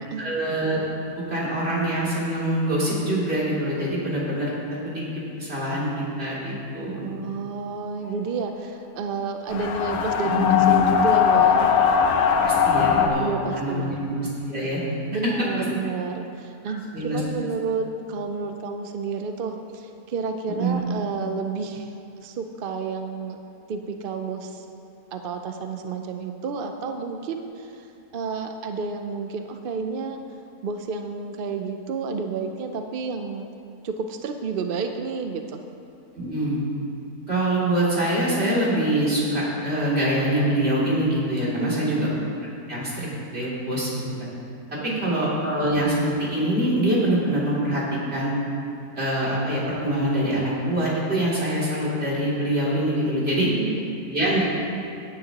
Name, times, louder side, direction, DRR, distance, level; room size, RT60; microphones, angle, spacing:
voice 1, 0.2-0.8 1.2-4.5 4.8-5.0 5.4-7.1 12.4-13.3 13.6-14.8 16.7-17.2 20.6-20.8 36.1-36.6 37.3-42.1 42.7-43.1 43.3-43.9 44.2-44.3 44.8-48.3 48.9-53.5 54.1-54.4, right 1 dB, 45° right, -8 dB, 3.1 m, -24 dB
voice 2, 7.0-11.7 13.2-14.0 15.1-23.4 23.7-24.7 25.1-27.9 28.1-30.2 30.6-33.5 33.8-35.6 41.6-42.1 44.9-45.2 53.4-54.0, right 5 dB, 65° right, 5 dB, 0.5 m, -30 dB
sound 1, 9.5-13.1, left 8 dB, 75° left, 1.2 m, -19 dB
17.5 x 9.4 x 2.9 m, 2.6 s
omnidirectional pair, 1.6 m